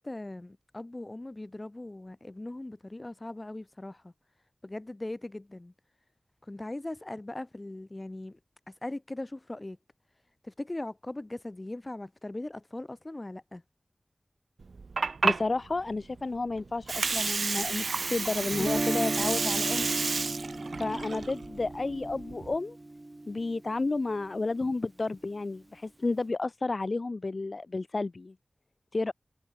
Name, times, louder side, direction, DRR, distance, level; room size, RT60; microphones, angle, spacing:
voice 1, 0.0-4.1 4.6-5.7 6.5-8.4 8.7-9.8 10.4-13.6, left 2 dB, 30° left, 2.7 m, -39 dB
Water, 14.6-22.6, right 4 dB, 85° right, 0.3 m, -31 dB
voice 2, 15.2-19.9 20.8-22.8 23.3-28.3 28.9-29.1, left 3 dB, 55° left, 1.0 m, -31 dB
Guitar, 18.5-24.5, right 2 dB, 30° right, 1.6 m, -35 dB
wide cardioid pair, 75°, 0 cm